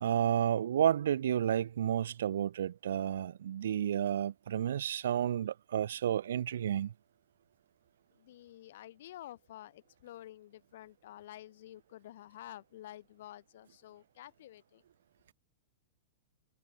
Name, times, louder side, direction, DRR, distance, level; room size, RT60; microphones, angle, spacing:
voice 1, 0.0-6.9, right 10 dB, 80° right, 0.3 m, -31 dB
voice 2, 8.2-14.8, left 13 dB, 65° left, 0.9 m, -50 dB
hypercardioid pair, 135°, 0 cm